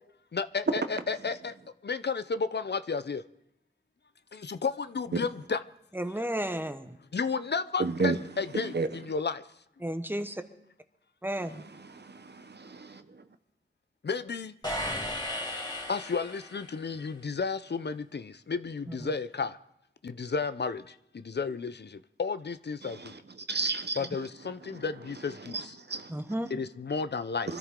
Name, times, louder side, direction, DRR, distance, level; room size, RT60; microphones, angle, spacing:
voice 1, 0.3-1.5 1.8-3.2 4.3-5.6 7.1-9.4 14.0-14.5 15.9-19.5 20.0-20.8 21.3-21.9 22.2-23.0 24.0-25.5 26.5-27.5, left 5 dB, 60° left, 0.6 m, -32 dB
voice 2, 5.9-7.0 9.8-10.4 11.2-11.7 18.9-19.1 26.1-26.5, right 1 dB, 10° right, 1.1 m, -33 dB
voice 3, 7.8-8.2 8.6-8.9 11.5-13.2 22.8-24.0 24.6-24.8 25.4-26.3 27.5-27.6, right 4 dB, 60° right, 1.0 m, -33 dB
sound 1, 14.6-16.9, left 1 dB, 20° left, 3.1 m, -35 dB
24.5 x 13.5 x 3.7 m
wide cardioid pair, 60°, 19 cm